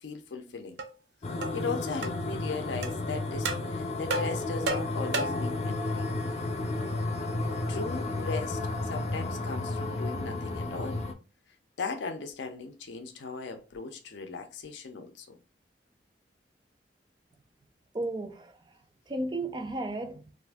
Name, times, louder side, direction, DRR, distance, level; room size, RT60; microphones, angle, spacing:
voice 1, 0.0-0.8 1.5-6.3 7.7-11.0 11.8-15.4, left 4 dB, 85° left, 0.5 m, -38 dB
sound 1, 0.8-0.9 1.4-1.6 2.0-2.2 2.8-2.9 3.4-3.7 4.1-5.5, right 2 dB, 80° right, 0.6 m, -32 dB
sound 2, 1.2-11.1, left 2 dB, 35° left, 0.4 m, -32 dB
voice 2, 17.9-18.8 19.1-20.2, right 2 dB, 25° right, 0.4 m, -34 dB
2.6 x 2.5 x 3.4 m
head